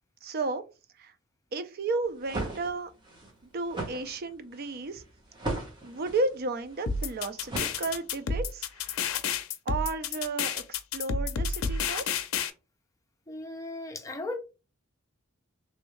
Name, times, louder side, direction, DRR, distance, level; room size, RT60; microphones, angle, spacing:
voice 1, 0.2-0.6 1.0-1.1 1.5-2.9 3.5-5.0 5.8-8.9 9.7-12.1, right 3 dB, 50° right, 0.5 m, -33 dB
sound 1, 2.0-8.3, right 2 dB, 25° right, 1.1 m, -38 dB
sound 2, 6.9-12.5, left 5 dB, 85° left, 0.5 m, -30 dB
voice 2, 13.3-14.4, left 2 dB, 15° left, 0.5 m, -36 dB
3.3 x 2.6 x 3.1 m
head